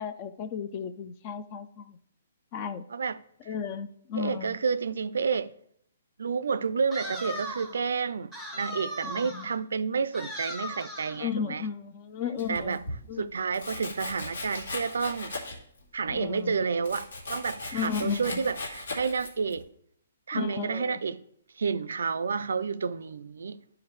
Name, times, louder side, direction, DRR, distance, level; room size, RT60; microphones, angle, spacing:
voice 1, 0.0-2.0 2.5-2.8 3.5-4.6 9.0-9.5 11.2-12.8 13.1-13.3 16.1-16.6 17.7-18.4 20.3-21.0, left 7 dB, 25° left, 0.4 m, -34 dB
voice 2, 2.9-3.2 4.2-5.5 6.2-11.7 12.5-12.8 13.2-15.3 15.9-19.7 20.3-21.2 21.6-23.6, right 5 dB, 85° right, 0.4 m, -30 dB
sound 1, 6.9-7.8 8.3-9.6 10.1-11.2, equal, 5° left, 0.8 m, -38 dB
Domestic sounds home sounds, 12.4-13.0 13.5-15.8 16.1-19.6, left 2 dB, 90° left, 2.1 m, -38 dB
12.0 x 4.7 x 3.1 m
hypercardioid pair, 175°, 0 cm